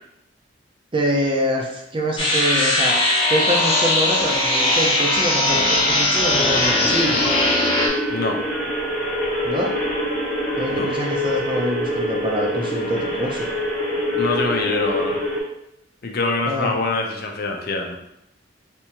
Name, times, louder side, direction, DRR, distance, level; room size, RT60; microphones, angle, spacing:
voice 1, 0.9-2.9 3.3-7.4 9.4-9.8 10.6-13.5 16.5-16.7, equal, 25° right, 0 dB, 0.6 m, -25 dB
sound 1, 2.2-7.9, left 1 dB, 30° left, 0.9 m, -19 dB
sound 2, 6.3-15.4, left 1 dB, 5° left, 0.9 m, -25 dB
voice 2, 8.1-8.4 10.7-10.9 14.2-15.2 16.0-18.0, left 3 dB, 55° left, 2 dB, 0.5 m, -24 dB
3.4 x 2.8 x 2.9 m, 0.82 s
head